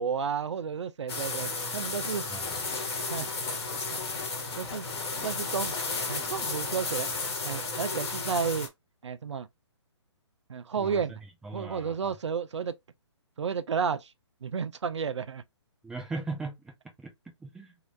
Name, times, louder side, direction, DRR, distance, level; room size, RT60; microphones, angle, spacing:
voice 1, 0.0-2.2 3.1-3.5 3.9-4.0 4.6-4.8 5.2-5.8 6.1-7.2 7.4-8.7 9.0-9.5 10.5-11.1 11.5-12.7 13.4-14.1 14.4-15.4, right 6 dB, 75° right, 0.4 m, -32 dB
sound 1, 1.1-8.7, left 3 dB, 60° left, 1.2 m, -33 dB
sound 2, 2.4-7.7, left 6 dB, 25° left, 0.8 m, -49 dB
voice 2, 11.4-12.1 15.8-16.7 17.0-17.1 17.4-17.7, right 3 dB, 5° right, 0.5 m, -38 dB
3.0 x 2.8 x 2.4 m
figure-of-eight pair, 135°, 15 cm